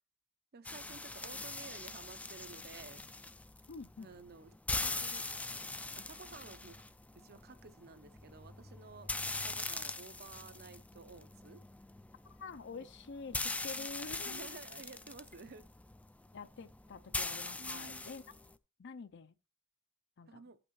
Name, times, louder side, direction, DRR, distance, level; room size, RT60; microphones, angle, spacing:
voice 1, 0.5-3.0 4.0-5.3 6.0-6.9 7.1-11.6 12.7-12.9 13.7-13.9 14.2-15.7 17.6-18.0 20.3-20.6, right 4 dB, 50° right, 0.7 m, -53 dB
sound 1, 0.6-18.5, left 3 dB, 5° left, 0.3 m, -42 dB
voice 2, 3.7-4.1 12.2-14.6 16.3-18.2 18.8-19.4 20.2-20.4, left 4 dB, 60° left, 0.6 m, -47 dB
14.5 x 5.9 x 3.1 m
head